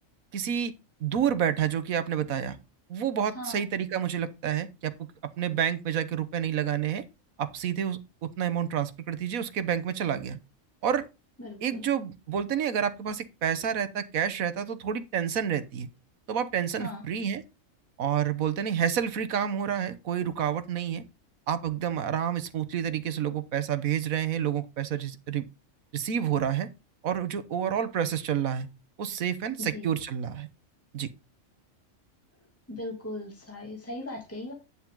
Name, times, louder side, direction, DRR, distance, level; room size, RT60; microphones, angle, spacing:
voice 1, 0.3-0.7 1.0-2.6 2.9-4.9 5.4-7.0 7.4-10.4 10.8-11.1 11.6-15.9 16.3-17.4 18.0-21.0 21.5-25.4 25.9-26.7 27.0-28.7 29.0-30.5 30.9-31.1, right 9 dB, 90° right, 1.4 m, -29 dB
voice 2, 11.4-11.8 16.8-17.0 29.6-29.9 32.7-34.5, left 1 dB, 10° left, 2.7 m, -38 dB
10.0 x 7.2 x 3.8 m
omnidirectional pair, 1.4 m